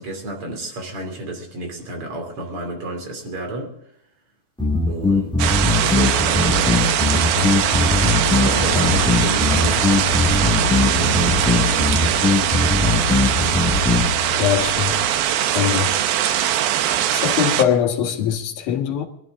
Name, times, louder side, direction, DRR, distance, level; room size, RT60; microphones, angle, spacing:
voice 1, 0.0-3.8 4.9-5.4 5.8-7.3 8.1-9.9 10.5-12.3 14.3-14.5, right 2 dB, 40° right, 3.6 m, -31 dB
sound 1, 4.6-14.1, left 3 dB, 5° left, 0.7 m, -20 dB
sound 2, 5.4-17.6, right 11 dB, 80° right, 2.7 m, -21 dB
sound 3, 7.3-15.2, left 6 dB, 45° left, 3.9 m, -29 dB
voice 2, 14.4-15.0 15.5-15.9 17.1-19.0, left 9 dB, 75° left, 3.4 m, -21 dB
22.0 x 13.0 x 3.7 m
omnidirectional pair, 4.2 m